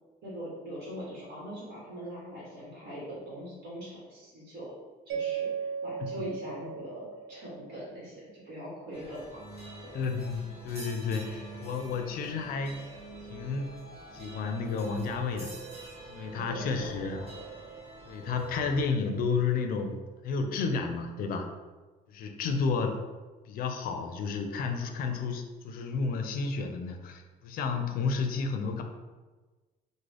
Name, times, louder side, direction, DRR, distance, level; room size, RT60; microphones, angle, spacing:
voice 1, 0.2-4.8 5.1-9.4 9.8-10.0 16.3-17.4, equal, 65° right, -6 dB, 1.2 m, -42 dB
Mallet percussion, 5.1-8.1, right 7 dB, 80° right, 0.5 m, -36 dB
sound 1, 8.9-18.8, right 3 dB, 35° right, 1.2 m, -45 dB
voice 2, 9.9-12.8 13.3-13.7 14.1-15.6 16.1-17.2 18.0-21.5 22.1-23.0 23.5-28.8, left 4 dB, 60° left, 5 dB, 0.5 m, -31 dB
3.7 x 2.1 x 3.3 m, 1.3 s
cardioid pair, 110°, 17 cm